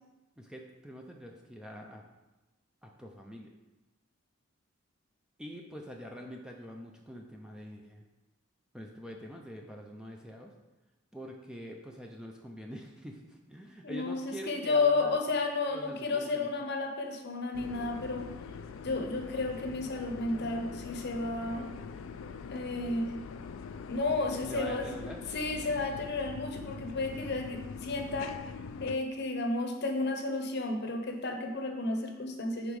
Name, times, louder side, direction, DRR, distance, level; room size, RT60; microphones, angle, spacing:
voice 1, 0.4-2.0 2.8-3.5 5.4-8.0 8.7-10.5 11.1-15.2 15.7-16.5 24.4-25.2, equal, 5° right, 1 dB, 0.4 m, -45 dB
voice 2, 13.8-18.3 18.8-21.7 22.5-23.1 23.9-24.9 25.3-28.3 28.8-32.8, left 3 dB, 50° left, 4 dB, 0.7 m, -32 dB
sound 1, 17.5-29.0, left 5 dB, 70° left, 0.3 m, -43 dB
5.3 x 3.8 x 4.7 m, 1.0 s
head